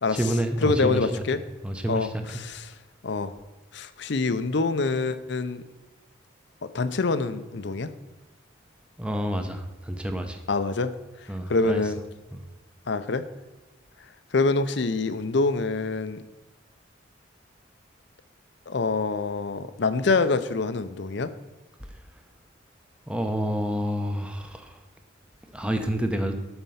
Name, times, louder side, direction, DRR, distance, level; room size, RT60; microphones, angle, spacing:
voice 1, 0.1-1.2 1.6-2.2 9.0-10.4 11.3-11.8 12.3-12.4 23.1-24.8 25.5-26.4, equal, 5° right, 6 dB, 0.7 m, -28 dB
voice 2, 0.6-1.4 1.9-2.7 3.0-3.3 3.7-5.6 6.6-7.9 10.5-10.9 11.5-12.0 12.9-13.2 14.3-16.2 18.7-21.3, left 3 dB, 60° left, 12 dB, 0.6 m, -25 dB
12.5 x 4.4 x 5.7 m, 1.2 s
head